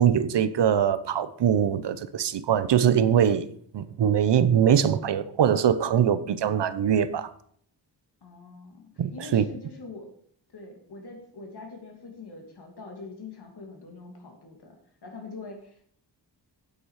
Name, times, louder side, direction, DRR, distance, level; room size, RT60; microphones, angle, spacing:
voice 1, 0.0-3.5 3.7-7.3 9.0-9.4, right 9 dB, 75° right, 0.8 m, -22 dB
voice 2, 8.2-10.1 10.5-14.8 15.0-15.8, left 3 dB, 65° left, 2.6 m, -43 dB
9.0 x 8.0 x 4.8 m
wide cardioid pair, 140°, 43 cm